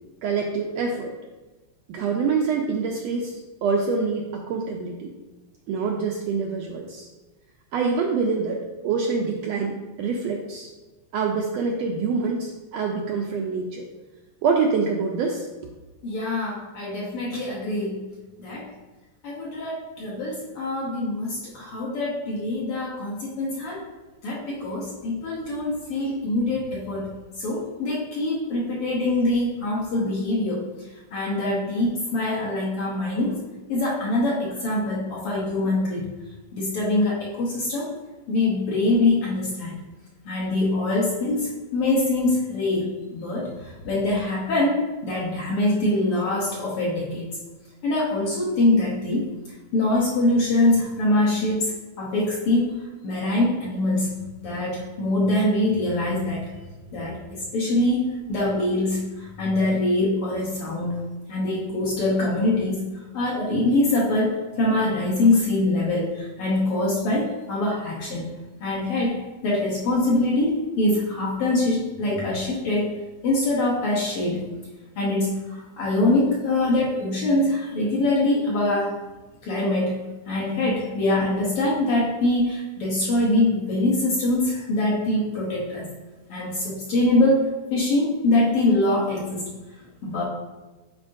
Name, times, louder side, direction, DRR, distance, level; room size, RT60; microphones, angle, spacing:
voice 1, 0.2-1.1 1.9-5.1 5.7-7.1 7.7-10.7 11.1-13.8 14.4-15.5, right 5 dB, 80° right, 0 dB, 1.5 m, -25 dB
voice 2, 16.0-18.0 18.4-18.7 19.2-23.8 24.2-27.1 27.4-30.7 31.1-33.4 33.7-36.1 36.5-37.9 38.3-39.8 40.2-47.4 47.8-49.3 49.7-52.8 53.0-54.1 54.4-56.5 56.9-68.3 68.6-72.9 73.2-74.5 75.0-79.0 79.4-85.9 86.3-89.5 90.0-90.2, left 2 dB, 65° left, -4 dB, 1.6 m, -24 dB
9.3 x 4.4 x 2.6 m, 1.2 s
omnidirectional pair, 3.5 m